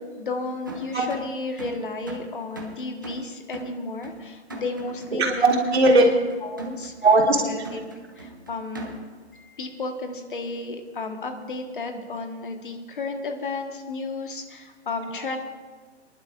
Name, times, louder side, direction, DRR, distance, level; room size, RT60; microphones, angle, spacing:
voice 1, 0.2-5.5 6.4-6.9 7.4-7.8 8.2-8.9 9.3-15.4, left 3 dB, 50° left, 5 dB, 1.5 m, -33 dB
sound 1, 0.7-9.3, right 2 dB, 20° right, 0.6 m, -40 dB
voice 2, 5.1-6.1 7.0-7.4, right 2 dB, 65° right, -2 dB, 3.1 m, -18 dB
28.5 x 11.0 x 2.6 m, 1.5 s
hypercardioid pair, 175°, 34 cm